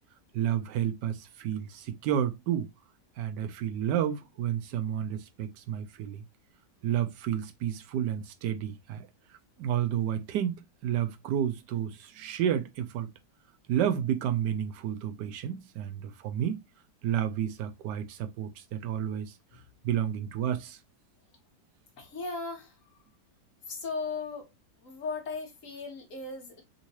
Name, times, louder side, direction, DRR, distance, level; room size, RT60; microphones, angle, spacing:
voice 1, 0.3-2.7 3.2-6.2 6.8-9.1 9.6-13.1 13.7-16.6 17.0-19.3 19.8-20.8, right 10 dB, 80° right, 1.2 m, -31 dB
voice 2, 22.0-22.7 23.7-24.5 24.8-26.6, left 4 dB, 50° left, 1.3 m, -37 dB
3.7 x 2.8 x 2.9 m
omnidirectional pair, 1.9 m